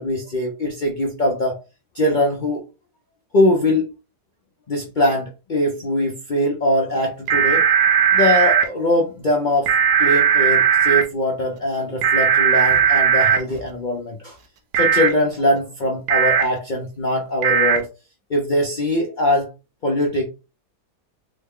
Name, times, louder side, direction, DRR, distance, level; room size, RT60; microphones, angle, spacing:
voice 1, 0.0-1.5 1.9-2.6 3.3-3.9 4.7-7.6 8.1-9.7 10.0-14.4 14.7-17.9 18.3-19.5 19.8-20.2, left 1 dB, 60° left, 0 dB, 0.4 m, -21 dB
sound 1, 7.3-8.6 9.7-11.0 12.0-13.4 14.7-15.1 16.1-16.4 17.4-17.8, right 7 dB, 90° right, 1.2 m, -16 dB
3.7 x 2.1 x 3.6 m, 0.31 s
omnidirectional pair, 1.7 m